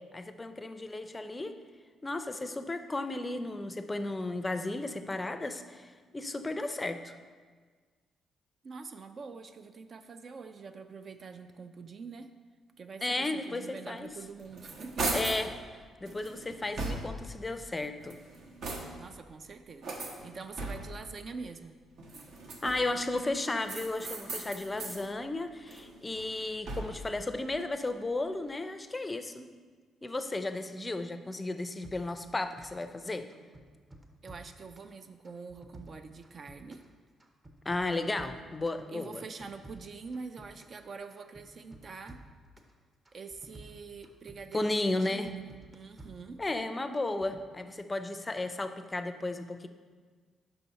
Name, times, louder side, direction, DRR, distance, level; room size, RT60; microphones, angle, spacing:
voice 1, 0.1-1.5 2.0-7.1 13.0-14.1 15.1-15.5 16.0-18.2 22.6-29.5 30.0-33.3 37.7-39.2 44.5-45.3 46.4-49.7, left 2 dB, 20° left, 9 dB, 0.4 m, -34 dB
voice 2, 8.6-12.3 12.8-15.2 18.9-21.8 34.2-36.8 38.9-42.2 43.1-45.3 45.7-46.4, right 4 dB, 45° right, 8 dB, 0.3 m, -45 dB
sound 1, 14.2-15.5 16.1-17.3 17.9-19.2 19.8-21.1 22.0-23.0 23.6-25.0 25.5-27.1, right 2 dB, 65° right, 0.9 m, -38 dB
sound 2, 31.8-33.0 33.3-34.9 35.2-36.9 37.2-38.8 39.1-40.8 41.1-42.7 43.1-44.7 45.0-46.6 47.0-47.4, right 1 dB, 25° right, 0.7 m, -52 dB
5.5 x 4.1 x 5.5 m, 1.5 s
cardioid pair, 90°, 0 cm